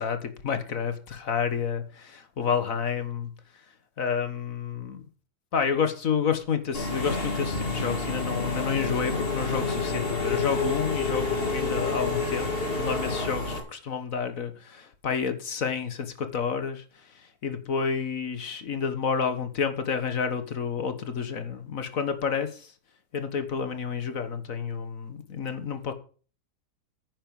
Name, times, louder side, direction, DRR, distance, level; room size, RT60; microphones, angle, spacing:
voice 1, 0.0-3.3 4.0-5.1 5.5-12.5 12.7-16.8 17.4-22.7 23.1-25.9, left 6 dB, 55° left, 9 dB, 1.8 m, -29 dB
Engine / Mechanisms, 6.7-13.6, left 3 dB, 35° left, 2.6 m, -29 dB
9.8 x 9.3 x 5.5 m, 0.39 s
omnidirectional pair, 1.8 m